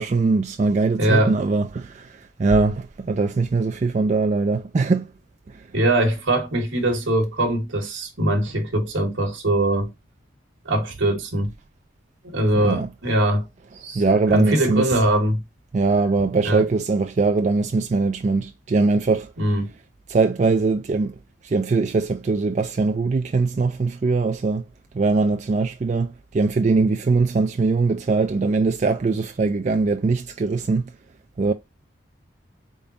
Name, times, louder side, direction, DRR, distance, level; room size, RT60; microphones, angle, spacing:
voice 1, 0.0-5.1 12.5-12.9 13.9-14.9 15.7-19.3 20.1-21.2 21.4-24.7 24.9-30.9 31.4-31.5, right 3 dB, 35° right, 0.3 m, -21 dB
voice 2, 1.0-1.3 5.7-9.9 10.6-11.5 12.2-13.5 13.8-14.0 14.3-15.4 16.4-16.7 19.4-19.7, right 1 dB, 80° right, 1.3 m, -22 dB
3.9 x 3.6 x 2.5 m
head